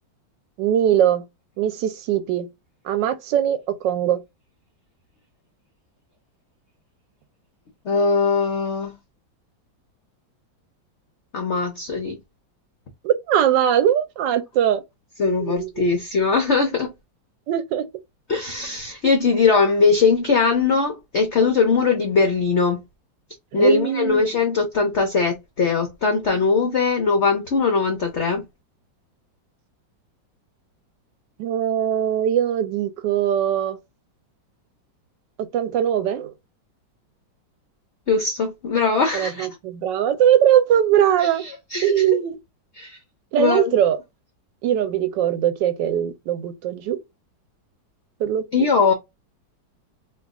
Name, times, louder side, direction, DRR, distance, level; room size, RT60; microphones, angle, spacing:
voice 1, 0.6-1.2 1.6-2.5 2.9-4.2 13.0-14.8 15.4-15.8 17.5-17.8 23.5-24.2 31.4-33.8 35.5-36.3 39.1-41.4 41.8-42.4 43.3-44.0 44.6-47.0 48.2-48.4, right 10 dB, 75° right, 1.2 m, -21 dB
voice 2, 7.8-9.0 11.3-12.2 15.2-16.9 18.3-22.8 23.5-28.4 38.1-39.5 41.2-42.2 42.7-43.0 43.4-43.8 48.5-48.9, left 4 dB, 75° left, 0.6 m, -20 dB
3.0 x 2.3 x 3.5 m
omnidirectional pair, 2.1 m